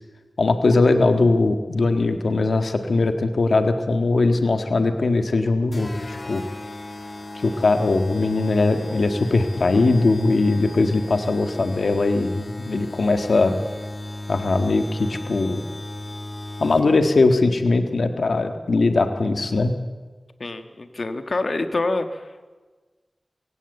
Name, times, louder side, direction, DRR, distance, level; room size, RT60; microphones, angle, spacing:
voice 1, 0.4-6.4 7.4-13.6 14.3-15.6 16.6-19.7, left 3 dB, 85° left, 7 dB, 1.6 m, -20 dB
sound 1, 5.7-17.1, left 1 dB, 45° left, 2.3 m, -36 dB
voice 2, 20.4-22.2, left 2 dB, 65° left, 8 dB, 1.7 m, -26 dB
22.5 x 16.0 x 8.2 m, 1.3 s
wide cardioid pair, 65°, 0 cm